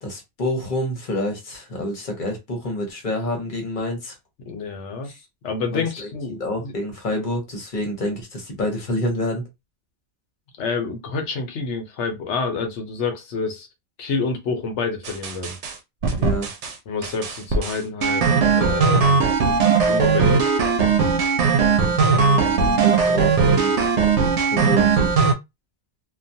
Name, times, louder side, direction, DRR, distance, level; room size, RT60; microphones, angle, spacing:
voice 1, 0.0-4.1 5.0-5.2 5.7-9.5 16.1-16.5 22.1-23.7 24.5-25.2, equal, 45° left, 1.1 m, -28 dB
voice 2, 4.5-5.1 5.4-6.7 10.6-13.7 14.0-15.6 16.9-19.2 19.8-20.4, left 4 dB, 80° left, 1.0 m, -28 dB
sound 1, 15.0-15.7 16.0-16.7 17.0-25.3, right 5 dB, 80° right, 0.9 m, -19 dB
2.4 x 2.3 x 2.6 m
omnidirectional pair, 1.2 m